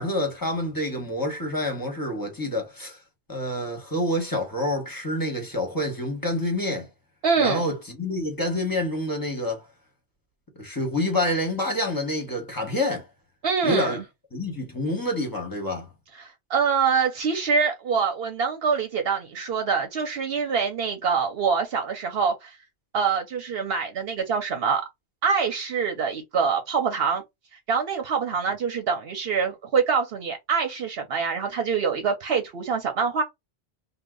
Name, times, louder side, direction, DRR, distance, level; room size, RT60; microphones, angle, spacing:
voice 1, 0.0-3.0 3.3-6.9 7.4-9.7 10.6-13.1 13.6-14.0 14.3-15.9, left 1 dB, 20° left, 1.1 m, -27 dB
voice 2, 7.2-7.6 13.4-14.0 16.1-22.6 22.9-24.8 25.2-27.2 27.7-33.2, right 5 dB, 70° right, 0.9 m, -25 dB
2.8 x 2.2 x 3.6 m
omnidirectional pair, 1.1 m